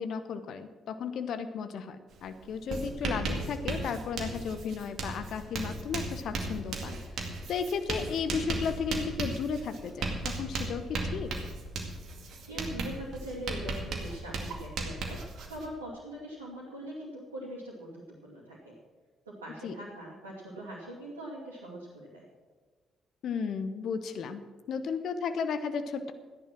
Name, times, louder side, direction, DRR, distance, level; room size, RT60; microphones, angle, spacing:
voice 1, 0.0-11.3 19.6-19.7 23.2-26.1, left 6 dB, 60° left, 10 dB, 1.0 m, -34 dB
Writing, 2.1-2.3 2.5-15.7, right 3 dB, 55° right, 2.2 m, -36 dB
voice 2, 12.5-15.2 15.5-18.8 19.2-22.2, right 1 dB, 85° right, -8 dB, 2.6 m, -42 dB
14.0 x 10.5 x 6.1 m, 1.4 s
figure-of-eight pair, 45°, 0 cm